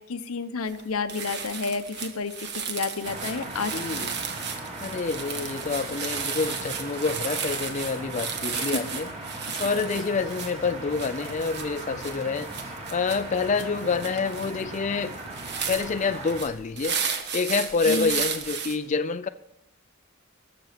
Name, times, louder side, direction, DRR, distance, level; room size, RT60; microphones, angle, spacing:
voice 1, 0.0-4.1 8.5-8.8 9.5-9.6 17.8-18.1, left 4 dB, 85° left, 10 dB, 0.9 m, -31 dB
sound 1, 0.7-0.8 1.1-18.8, right 6 dB, 50° right, 1.4 m, -34 dB
sound 2, 3.0-16.4, right 1 dB, 30° right, 2.3 m, -38 dB
voice 2, 3.7-4.1 4.8-9.1 9.6-12.5 12.9-15.2 15.7-17.0 17.3-19.3, left 4 dB, 35° left, 10 dB, 0.4 m, -27 dB
20.0 x 6.9 x 5.9 m, 0.98 s
head